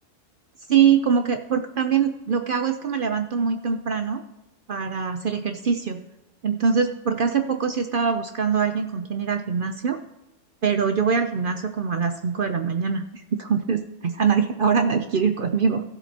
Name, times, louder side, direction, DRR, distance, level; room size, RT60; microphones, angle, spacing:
voice 1, 0.7-4.2 4.7-6.0 6.4-10.0 10.6-15.8, right 6 dB, 75° right, 7 dB, 0.5 m, -23 dB
15.5 x 7.7 x 2.8 m, 1.0 s
omnidirectional pair, 1.6 m